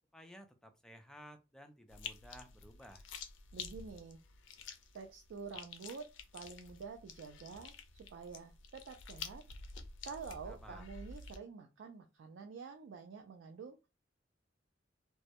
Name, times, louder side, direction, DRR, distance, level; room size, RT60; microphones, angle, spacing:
voice 1, 0.1-3.0 10.5-10.9, equal, 5° left, 5 dB, 0.3 m, -55 dB
sound 1, 1.9-11.4, left 5 dB, 80° left, 0.4 m, -50 dB
voice 2, 3.5-4.2 4.9-9.4 10.0-13.8, right 5 dB, 80° right, 4 dB, 0.3 m, -48 dB
2.2 x 2.1 x 2.8 m, 0.27 s
head